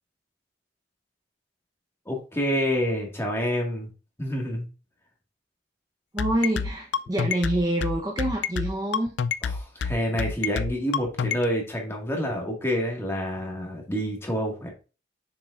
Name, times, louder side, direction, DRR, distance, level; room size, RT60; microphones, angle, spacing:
voice 1, 2.1-3.9 4.2-4.7 9.4-14.7, equal, 15° left, 1.8 m, -28 dB
voice 2, 6.1-9.1, right 1 dB, 20° right, 0.8 m, -26 dB
sound 1, 6.2-11.4, left 6 dB, 75° left, 0.4 m, -27 dB
6.7 x 6.0 x 2.5 m
head